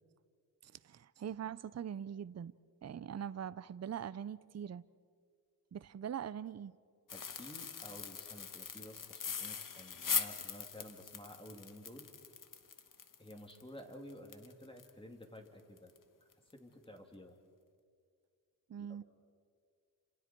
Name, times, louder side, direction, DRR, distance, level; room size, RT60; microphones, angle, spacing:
voice 1, 0.8-2.5 2.8-4.8 5.7-6.7 18.7-19.0, right 8 dB, 40° right, 0.6 m, -42 dB
sound 1, 7.1-14.9 15.2-15.3 15.8-16.0 16.3-16.5, left 6 dB, 55° left, 1.3 m, -41 dB
voice 2, 7.1-12.1 13.2-15.9 16.5-17.4 18.9-19.0, left 1 dB, 15° left, 3.0 m, -52 dB
30.0 x 27.5 x 4.6 m
cardioid pair, 80°, 40 cm